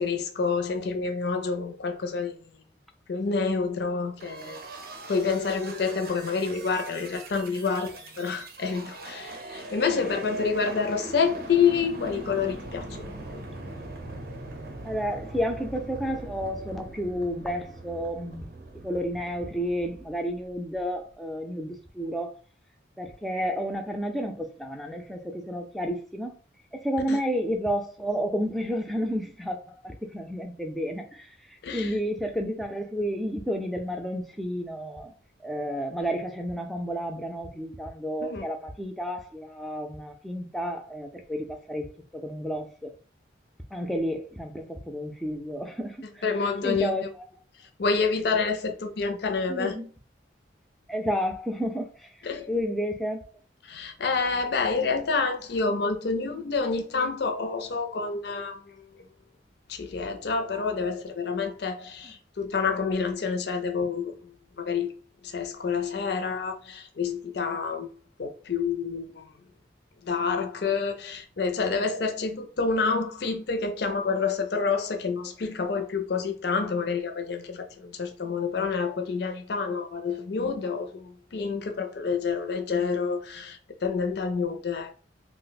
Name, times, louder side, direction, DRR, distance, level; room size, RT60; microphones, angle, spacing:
voice 1, 0.0-2.4 3.1-4.6 5.1-13.1 27.1-27.2 31.6-32.0 38.2-38.5 46.2-46.9 47.8-49.8 52.2-52.5 53.6-59.1 59.7-64.3 64.6-64.9 65.2-67.9 68.2-69.3 70.0-84.9, left 5 dB, 60° left, 0.4 m, -28 dB
sound 1, 4.2-20.8, right 2 dB, 50° right, 0.6 m, -41 dB
voice 2, 14.8-18.5 18.7-22.3 23.0-26.3 26.7-29.6 29.8-35.1 35.4-42.9 43.7-46.2 46.6-47.1 49.5-49.9 50.9-53.3, equal, ahead, 0.4 m, -31 dB
2.5 x 2.1 x 4.0 m
head